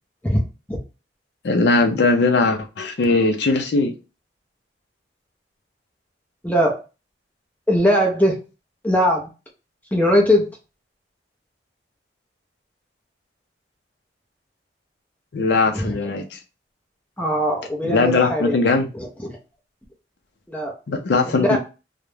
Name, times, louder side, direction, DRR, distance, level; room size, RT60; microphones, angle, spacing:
voice 1, 1.4-3.9 15.3-16.4 17.8-18.9 20.9-21.6, left 3 dB, 65° left, 4 dB, 0.4 m, -19 dB
voice 2, 6.4-6.8 7.7-8.4 8.8-9.3 9.9-10.5 15.8-15.9 17.2-18.6 19.0-19.4 20.5-20.7 21.3-21.6, equal, 10° left, 0 dB, 0.5 m, -20 dB
2.3 x 2.0 x 3.0 m, 0.30 s
head